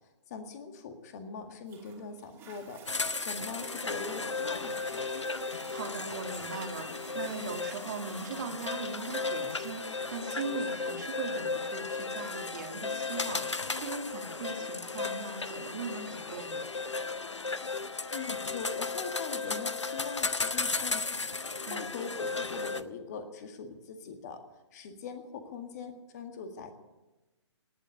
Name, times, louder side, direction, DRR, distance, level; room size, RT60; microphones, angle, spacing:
voice 1, 0.3-2.8 3.1-5.2 18.1-24.4 24.7-26.7, left 5 dB, 35° left, 6 dB, 1.9 m, -42 dB
Toilet flush, 1.7-14.7 15.3-15.4, right 6 dB, 15° right, 2.6 m, -55 dB
sound 1, 2.9-22.8, left 4 dB, 80° left, 0.9 m, -35 dB
voice 2, 5.7-16.6 21.7-21.9, right 4 dB, 40° right, 5 dB, 2.0 m, -40 dB
18.5 x 7.9 x 9.7 m, 1.1 s
figure-of-eight pair, 130°, 15 cm